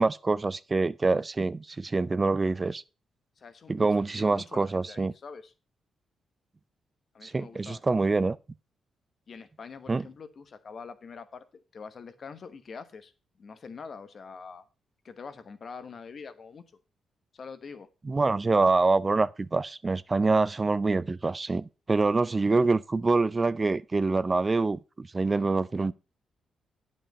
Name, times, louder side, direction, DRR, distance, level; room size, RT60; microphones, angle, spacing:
voice 1, 0.0-2.8 3.7-5.1 7.2-8.4 9.9-10.0 18.1-25.9, right 3 dB, 30° right, 0.5 m, -25 dB
voice 2, 3.4-5.5 7.1-8.0 9.3-11.4 11.7-13.1 13.4-14.6 15.0-16.6 17.3-17.9, left 5 dB, 55° left, 1.1 m, -44 dB
8.8 x 5.4 x 5.4 m
supercardioid pair, 60°, 0 cm